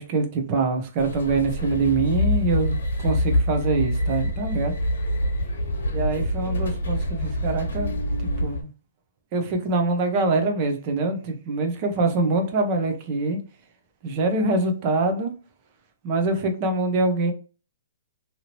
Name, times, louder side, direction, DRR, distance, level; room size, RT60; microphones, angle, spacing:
voice 1, 0.0-2.8 3.0-4.7 5.9-8.0 8.4-8.7 9.3-13.4 14.0-15.3 16.0-17.3, right 3 dB, 25° right, 0.5 m, -24 dB
sound 1, 1.0-8.6, equal, 85° left, 0.9 m, -25 dB
2.9 x 2.7 x 2.8 m
hypercardioid pair, 180°, 0 cm